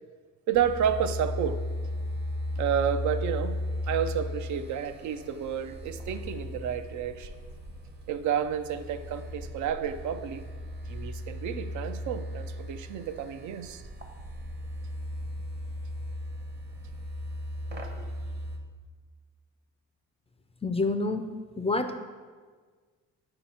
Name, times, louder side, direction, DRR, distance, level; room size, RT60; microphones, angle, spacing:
sound 1, 0.5-18.6, left 1 dB, 35° right, 0.8 m, -36 dB
voice 1, 0.5-1.6 2.6-7.3 8.1-10.4 10.9-13.8 18.0-18.1, right 8 dB, 70° right, 10 dB, 0.5 m, -30 dB
voice 2, 20.6-21.3 21.6-22.0, left 3 dB, 20° left, 8 dB, 0.3 m, -27 dB
6.5 x 2.9 x 5.4 m, 1.5 s
cardioid pair, 90°, 30 cm